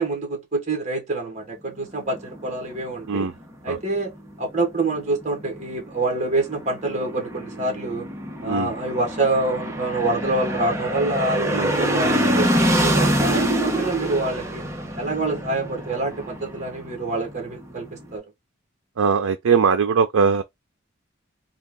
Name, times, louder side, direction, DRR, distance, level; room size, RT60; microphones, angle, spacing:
voice 1, 0.0-3.3 3.6-8.1 8.4-14.6 15.0-18.2, right 2 dB, 35° right, 1.3 m, -26 dB
sound 1, 1.8-18.2, right 1 dB, 15° right, 0.8 m, -26 dB
voice 2, 8.4-8.7 11.5-11.7 19.0-20.4, right 6 dB, 90° right, 0.5 m, -20 dB
3.6 x 2.3 x 3.6 m
head